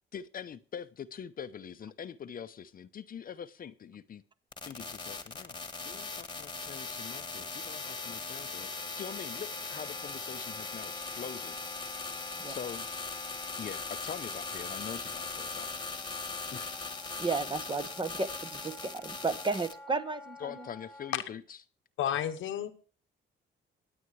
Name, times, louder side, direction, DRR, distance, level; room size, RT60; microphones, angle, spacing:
voice 1, 0.1-4.2 4.6-11.6 12.5-12.9 13.6-15.8 16.5-16.7 20.4-21.6, left 8 dB, 45° left, 13 dB, 0.7 m, -44 dB
sound 1, 4.5-19.7, left 3 dB, 20° left, 1.4 m, -39 dB
Wind instrument woodwind instrument, 9.1-21.2, left 1 dB, ahead, 2.0 m, -53 dB
voice 2, 17.2-20.7, right 3 dB, 25° right, 11 dB, 0.9 m, -33 dB
voice 3, 22.0-22.7, left 10 dB, 80° left, 7 dB, 1.0 m, -31 dB
22.5 x 8.8 x 3.2 m, 0.40 s
cardioid pair, 90°, 20 cm